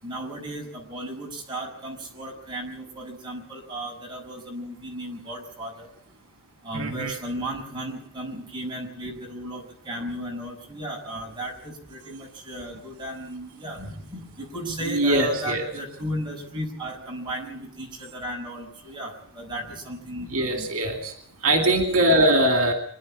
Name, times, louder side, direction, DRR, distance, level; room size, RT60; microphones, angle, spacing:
voice 1, 0.0-5.9 6.6-20.7, right 1 dB, 20° right, -2 dB, 6.1 m, -35 dB
voice 2, 6.7-7.2 14.9-15.6 20.3-21.1 21.4-22.7, right 1 dB, 70° right, 5 dB, 2.5 m, -21 dB
25.5 x 10.5 x 9.8 m, 0.67 s
head